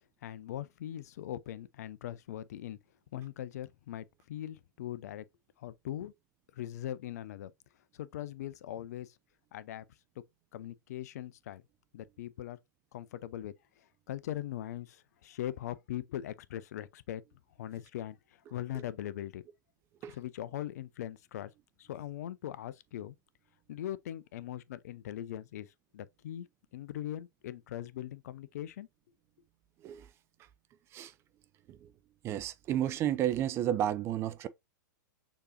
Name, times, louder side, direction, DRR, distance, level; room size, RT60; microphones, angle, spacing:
voice 1, 0.2-2.8 3.1-5.3 5.6-6.1 6.5-7.5 7.9-9.2 9.5-9.9 10.5-11.6 11.9-12.6 12.9-17.2 17.6-19.4 20.1-21.5 21.8-23.2 23.7-26.5 26.7-28.9, left 12 dB, 50° left, 0.4 m, -41 dB
voice 2, 32.2-34.5, right 11 dB, 25° right, 0.4 m, -32 dB
6.6 x 2.9 x 2.6 m
figure-of-eight pair, 105°, 11 cm